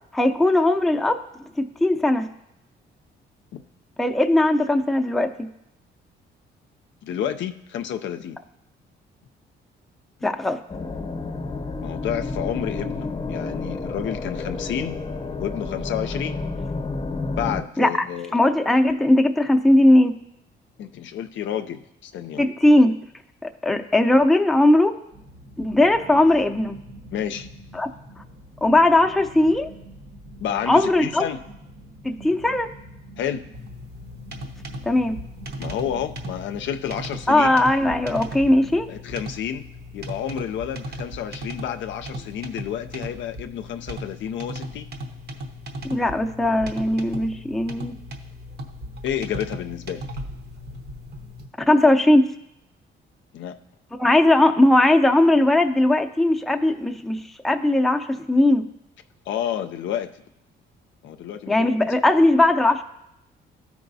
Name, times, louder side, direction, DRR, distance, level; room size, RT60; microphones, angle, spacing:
voice 1, 0.1-1.2 1.6-2.3 4.0-5.5 10.2-10.6 17.8-18.1 18.3-20.1 22.4-22.9 23.4-25.0 25.6-26.8 27.7-27.9 28.6-29.7 30.7-31.2 32.0-32.7 34.9-35.2 37.3-38.9 45.9-47.9 51.7-52.3 54.0-58.7 61.5-62.8, left 1 dB, ahead, 4 dB, 0.5 m, -19 dB
voice 2, 7.0-8.4 11.8-14.9 15.4-16.4 17.3-18.4 20.8-22.5 27.1-27.5 30.4-31.4 33.2-33.4 35.6-37.6 38.9-39.6 39.9-44.9 49.0-50.0 53.3-53.5 59.3-60.1 61.0-61.7, left 9 dB, 70° left, 8 dB, 0.5 m, -30 dB
sound 1, 10.7-17.6, left 3 dB, 25° left, 0.8 m, -30 dB
sound 2, 25.1-38.8, right 1 dB, 80° right, 1.6 m, -45 dB
sound 3, 33.5-51.5, equal, 55° right, 0.9 m, -37 dB
13.5 x 4.8 x 2.7 m, 0.83 s
cardioid pair, 90°, 20 cm